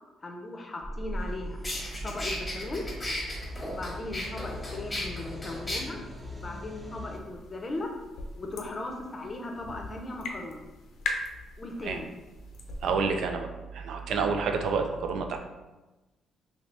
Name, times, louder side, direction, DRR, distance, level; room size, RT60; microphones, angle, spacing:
voice 1, 0.2-1.6 2.0-2.8 3.7-7.9 8.4-10.6 11.6-12.1, left 2 dB, 30° left, 2 dB, 0.6 m, -38 dB
sound 1, 0.8-7.2, equal, 10° right, 0.6 m, -39 dB
sound 2, 1.2-1.3 1.6-5.8, left 1 dB, 15° left, 1.1 m, -35 dB
sound 3, 7.1-12.9, left 3 dB, 75° left, 0.5 m, -40 dB
voice 2, 12.8-15.4, right 5 dB, 75° right, 5 dB, 0.4 m, -29 dB
2.8 x 2.8 x 3.2 m, 1.1 s
cardioid pair, 90°, 0 cm